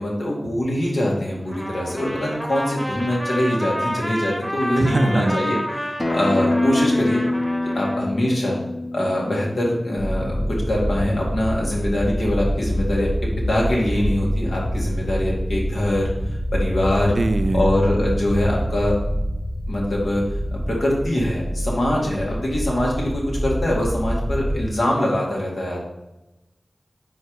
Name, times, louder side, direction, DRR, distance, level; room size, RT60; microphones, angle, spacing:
voice 1, 0.0-7.2 7.7-8.6 8.9-13.1 13.5-16.1 16.5-17.2 17.5-18.9 19.7-20.2 20.5-25.8, left 1 dB, 85° left, -3 dB, 1.8 m, -23 dB
Trumpet, 1.5-8.0, equal, ahead, 0.9 m, -29 dB
voice 2, 4.8-5.4 17.2-17.7, right 2 dB, 55° right, 11 dB, 0.4 m, -21 dB
Acoustic guitar, 6.0-11.2, left 2 dB, 30° left, 0.8 m, -26 dB
sound 1, 10.0-24.6, equal, 50° left, 1.1 m, -26 dB
4.7 x 4.3 x 4.7 m, 0.95 s
wide cardioid pair, 50°, 0 cm